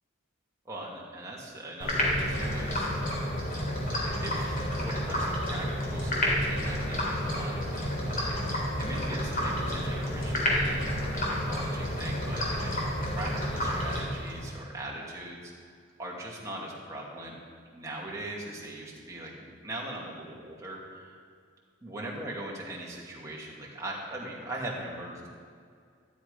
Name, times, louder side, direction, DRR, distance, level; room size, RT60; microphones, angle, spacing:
voice 1, 0.7-2.9 3.8-8.2 8.8-12.8 13.1-15.5 16.0-17.3 17.7-19.3 19.6-21.1 21.8-25.3, right 1 dB, 15° right, -4 dB, 2.5 m, -40 dB
sound 1, 1.8-14.5, equal, 45° left, 3.7 m, -30 dB
13.5 x 12.0 x 5.2 m, 2.2 s
head